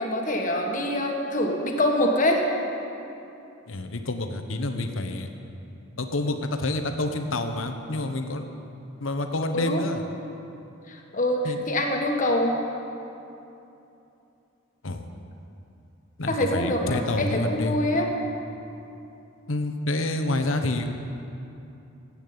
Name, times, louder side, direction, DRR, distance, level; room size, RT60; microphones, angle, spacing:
voice 1, 0.0-2.4 9.5-9.8 10.9-12.5 16.3-18.1, left 1 dB, 40° left, 1 dB, 1.7 m, -25 dB
voice 2, 3.7-5.3 6.0-8.4 9.0-10.0 11.4-11.6 14.8-15.0 16.2-17.8 19.5-20.9, left 2 dB, 75° left, 6 dB, 1.1 m, -28 dB
14.5 x 8.7 x 8.7 m, 2.8 s
head